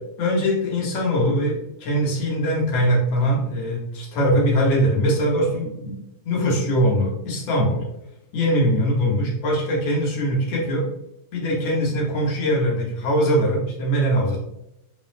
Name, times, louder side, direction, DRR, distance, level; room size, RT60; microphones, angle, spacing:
voice 1, 0.2-7.8 8.3-10.8 11.3-14.4, equal, 60° left, -4 dB, 1.7 m, -22 dB
8.7 x 5.2 x 2.5 m, 0.83 s
omnidirectional pair, 6.0 m